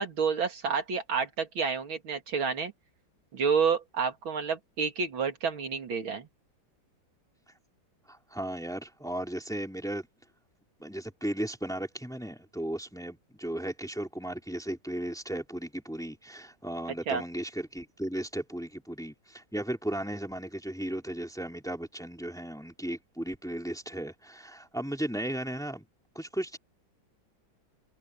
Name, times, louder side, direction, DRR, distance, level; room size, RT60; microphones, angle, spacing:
voice 1, 0.0-2.7 3.3-6.3 17.1-17.2, right 6 dB, 90° right, 3.2 m, -29 dB
voice 2, 8.1-10.1 10.8-25.8 26.1-26.6, right 1 dB, ahead, 3.0 m, -35 dB
omnidirectional pair, 2.1 m